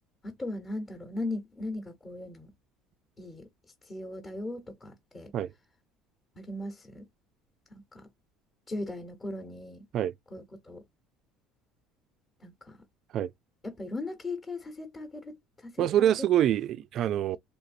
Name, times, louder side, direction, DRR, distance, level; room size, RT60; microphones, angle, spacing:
voice 1, 0.2-2.5 3.2-3.5 3.8-5.3 6.3-7.1 7.7-8.1 8.7-9.8 10.3-10.8 12.4-12.8 13.6-16.1, left 2 dB, 25° left, 1.0 m, -38 dB
voice 2, 15.8-17.4, right 11 dB, 55° right, 0.3 m, -25 dB
3.5 x 2.6 x 2.5 m
supercardioid pair, 95°, 0 cm